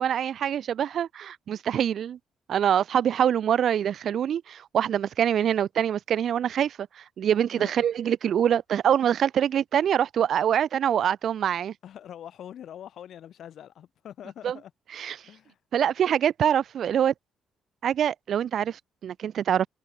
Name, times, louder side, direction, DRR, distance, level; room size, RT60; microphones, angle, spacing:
voice 1, 0.0-2.2 2.5-11.7 14.4-14.6 15.0-15.2 15.7-17.1 17.8-19.7, right 9 dB, 65° right, 0.6 m, -25 dB
voice 2, 11.8-14.7 15.2-15.6, left 10 dB, 70° left, 7.1 m, -44 dB
cardioid pair, 90°, 0 cm